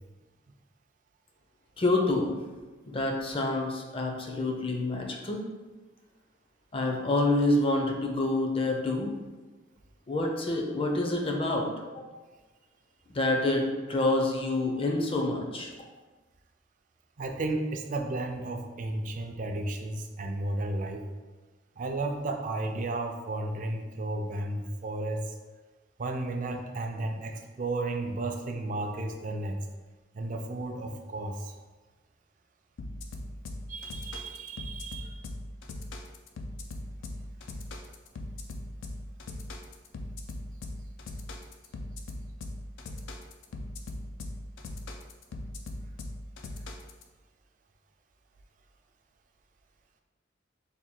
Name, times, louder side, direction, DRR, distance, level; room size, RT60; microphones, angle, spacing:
voice 1, 1.8-2.3 2.8-5.4 6.7-9.1 10.1-11.7 13.1-15.7, left 2 dB, 30° left, 1 dB, 0.5 m, -27 dB
voice 2, 17.2-21.0 21.8-25.2 26.0-29.6 30.1-31.5 33.7-35.1, right 2 dB, 45° right, 4 dB, 0.4 m, -33 dB
sound 1, 32.8-47.0, left 1 dB, 85° left, 0.4 m, -39 dB
3.4 x 2.3 x 4.3 m, 1.3 s
head